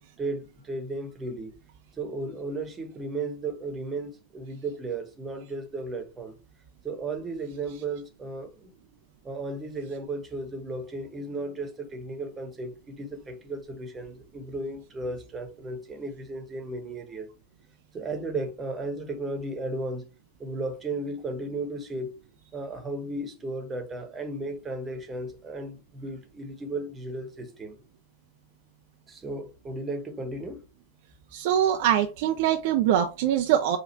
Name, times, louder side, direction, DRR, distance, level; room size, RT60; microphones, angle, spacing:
voice 1, 0.0-1.5 2.0-6.4 6.8-8.7 9.2-17.3 17.9-20.1 20.4-22.1 22.5-27.8 29.1-30.6, right 2 dB, 20° right, 1.1 m, -35 dB
voice 2, 31.3-33.8, right 10 dB, 50° right, 0.5 m, -23 dB
4.9 x 2.4 x 4.3 m
figure-of-eight pair, 90°, 0 cm